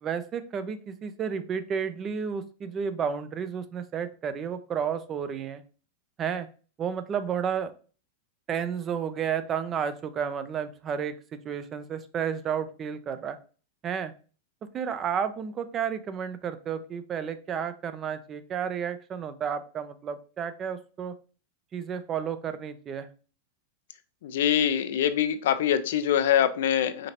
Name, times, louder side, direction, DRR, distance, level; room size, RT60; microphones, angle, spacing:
voice 1, 0.0-5.6 6.2-6.5 6.8-7.7 8.5-13.4 13.8-14.1 14.7-21.1 21.7-23.1, right 7 dB, 30° right, 11 dB, 0.5 m, -32 dB
voice 2, 24.2-27.1, left 9 dB, 65° left, 11 dB, 0.4 m, -24 dB
5.0 x 2.8 x 2.9 m, 0.38 s
hypercardioid pair, 95°, 0 cm